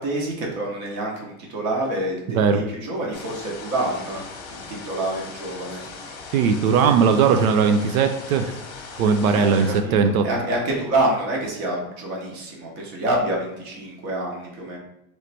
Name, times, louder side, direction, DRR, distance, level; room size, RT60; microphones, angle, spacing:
voice 1, 0.0-4.2 4.5-5.8 9.3-14.8, right 1 dB, 25° right, -1 dB, 0.8 m, -27 dB
sound 1, 3.1-9.8, left 4 dB, 45° left, 0.9 m, -39 dB
voice 2, 6.3-8.5 9.0-10.2, right 6 dB, 80° right, 7 dB, 0.6 m, -19 dB
3.2 x 3.1 x 4.0 m, 0.82 s
supercardioid pair, 175°, 42 cm